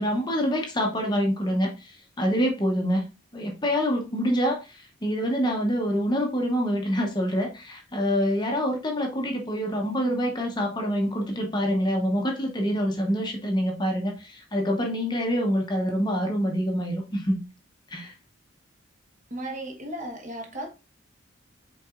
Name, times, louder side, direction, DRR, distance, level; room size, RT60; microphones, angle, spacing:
voice 1, 0.0-3.0 3.3-17.4 17.9-18.1, equal, 20° left, 0.8 m, -26 dB
voice 2, 19.3-20.7, right 1 dB, 35° right, 1.1 m, -35 dB
5.6 x 3.9 x 2.4 m
head